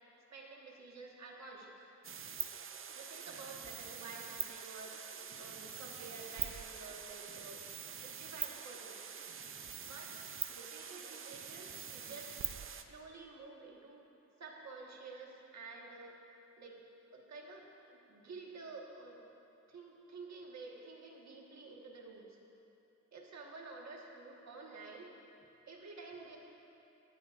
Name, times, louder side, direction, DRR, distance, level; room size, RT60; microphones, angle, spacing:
voice 1, 0.3-1.8 2.9-5.0 5.3-7.6 8.0-9.2 9.8-10.1 10.5-12.3 12.9-14.0 14.4-16.2 16.6-16.8 17.1-19.2 19.7-22.4 23.1-25.1 25.7-26.4, right 3 dB, 65° right, -1 dB, 1.5 m, -50 dB
sound 1, 2.0-12.8, right 7 dB, 45° right, 0.5 m, -44 dB
19.0 x 10.5 x 2.5 m, 2.9 s
wide cardioid pair, 160°, 29 cm